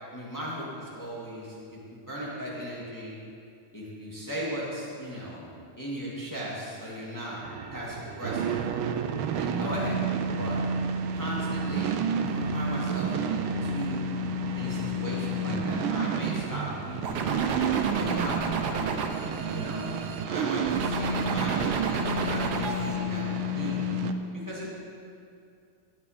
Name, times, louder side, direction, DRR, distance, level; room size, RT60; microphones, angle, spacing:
voice 1, 0.1-3.2 3.7-7.4 7.7-8.6 9.3-10.0 10.4-10.6 11.1-12.0 12.3-14.1 14.5-18.7 19.5-19.9 20.2-23.2 23.5-23.8 24.3-24.7, equal, 10° left, -6 dB, 2.0 m, -37 dB
sound 1, 7.4-24.1, right 3 dB, 80° right, 1.5 m, -30 dB
sound 2, 17.0-20.2 20.7-23.0, right 4 dB, 60° right, 1.3 m, -32 dB
17.5 x 7.3 x 5.1 m, 2.5 s
omnidirectional pair, 2.3 m